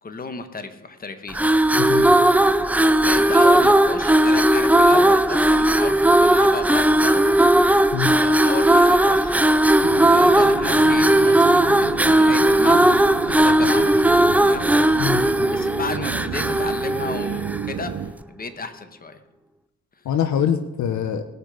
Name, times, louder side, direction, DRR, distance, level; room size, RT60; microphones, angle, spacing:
voice 1, 0.0-1.4 3.0-7.2 8.2-9.3 10.0-12.9 13.2-14.1 14.4-15.1 15.4-19.2, left 4 dB, 30° left, 8 dB, 1.4 m, -33 dB
sound 1, 1.3-17.7, right 1 dB, 5° right, 0.5 m, -17 dB
voice 2, 1.8-2.1 7.9-8.1 15.0-15.2 20.0-21.2, left 8 dB, 70° left, 9 dB, 0.9 m, -23 dB
sound 2, 9.8-18.1, right 9 dB, 60° right, 0.8 m, -32 dB
19.5 x 6.6 x 5.0 m, 1.0 s
cardioid pair, 90°, 30 cm